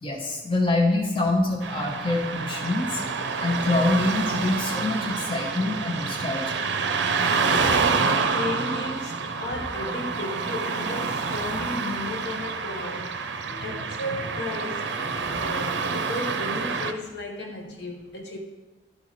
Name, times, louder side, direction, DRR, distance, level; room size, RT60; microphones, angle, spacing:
voice 1, 0.0-3.0 3.4-6.7 13.5-13.8 15.2-15.4, left 2 dB, 30° left, 0.9 m, -26 dB
Car passing by / Traffic noise roadway noise, 1.6-16.9, right 4 dB, 70° right, 0.6 m, -28 dB
voice 2, 7.5-13.2 13.6-18.4, left 1 dB, 70° left, 1.2 m, -34 dB
12.0 x 4.8 x 4.1 m
head